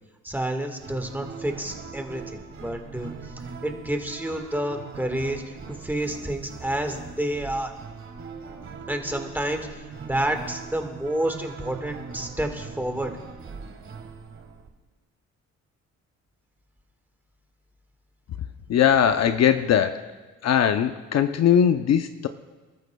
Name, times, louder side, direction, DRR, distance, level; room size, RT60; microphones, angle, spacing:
voice 1, 0.2-3.1 3.6-7.7 8.9-13.1, right 1 dB, 5° right, 4 dB, 1.6 m, -29 dB
sound 1, 0.8-14.7, right 5 dB, 40° right, 1.6 m, -41 dB
voice 2, 18.7-20.1 20.4-22.3, left 9 dB, 60° left, 8 dB, 0.7 m, -20 dB
27.5 x 13.0 x 2.3 m, 1.3 s
cardioid pair, 110°, 30 cm